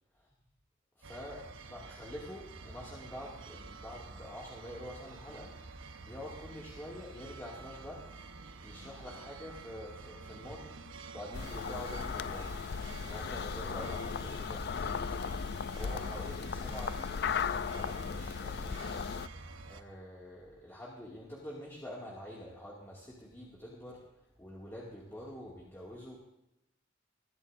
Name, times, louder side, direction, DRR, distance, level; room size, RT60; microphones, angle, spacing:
voice 1, 1.0-5.5 6.0-8.1 8.6-10.7 11.1-12.6 13.0-15.1 15.7-18.8 19.6-26.2, left 1 dB, 10° left, -5 dB, 2.1 m, -46 dB
sound 1, 1.0-19.8, right 3 dB, 75° right, 1.0 m, -49 dB
sound 2, 11.3-19.3, left 6 dB, 50° left, 0.4 m, -36 dB
21.5 x 12.5 x 2.6 m, 0.88 s
head